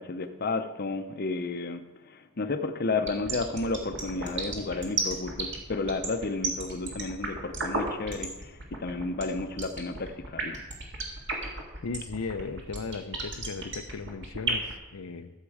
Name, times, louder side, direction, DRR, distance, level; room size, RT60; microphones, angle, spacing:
voice 1, 0.0-10.6, left 3 dB, 45° left, 8 dB, 0.7 m, -32 dB
sound 1, 2.9-14.7, right 3 dB, 55° right, 2.1 m, -32 dB
voice 2, 11.8-15.3, left 4 dB, 80° left, 8 dB, 0.6 m, -36 dB
13.0 x 7.5 x 4.8 m, 1.1 s
head